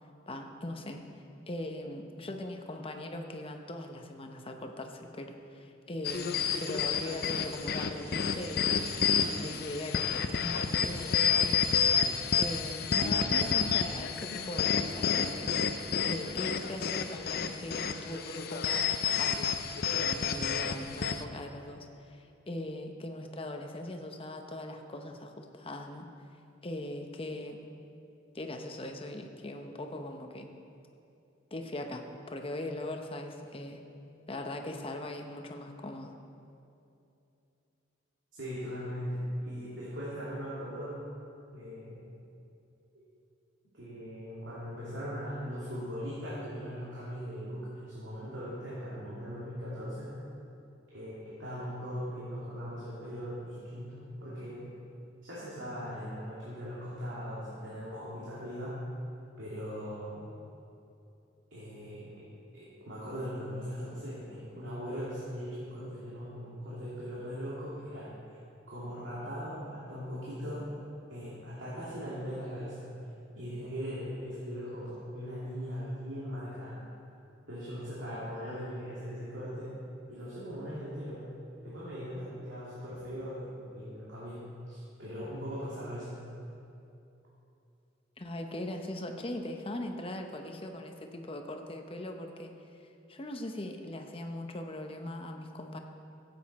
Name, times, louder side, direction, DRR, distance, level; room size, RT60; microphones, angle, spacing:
voice 1, 0.3-1.0 1.5-8.9 9.4-11.6 11.9-15.5 16.0-18.8 19.2-19.5 19.9-26.1 26.6-27.6 28.3-30.5 31.5-33.8 34.3-36.1 88.2-92.5 93.1-95.8, left 1 dB, 30° left, 4 dB, 0.8 m, -40 dB
sound 1, 6.0-21.2, left 6 dB, 55° left, 0.5 m, -30 dB
voice 2, 38.3-41.0 41.5-42.0 43.7-50.1 50.9-54.7 55.2-58.8 59.4-60.3 61.5-62.1 62.5-68.4 68.7-70.7 71.1-72.9 73.3-76.8 77.5-79.8 80.1-81.2 81.6-86.4, equal, 75° right, -9 dB, 2.4 m, -39 dB
15.0 x 8.0 x 4.2 m, 2.7 s
head